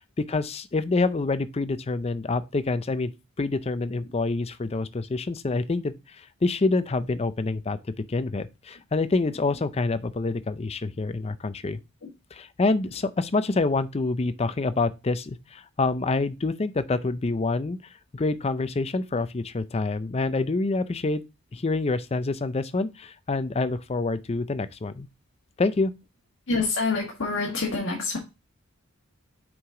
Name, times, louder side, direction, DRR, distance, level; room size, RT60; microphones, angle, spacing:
voice 1, 0.3-3.1 3.4-7.8 8.1-11.8 12.3-17.8 18.1-21.2 21.5-25.1 25.6-25.9, left 3 dB, 30° left, 0.5 m, -27 dB
voice 2, 26.5-28.2, left 3 dB, 60° left, 1.4 m, -27 dB
6.1 x 4.8 x 3.7 m
head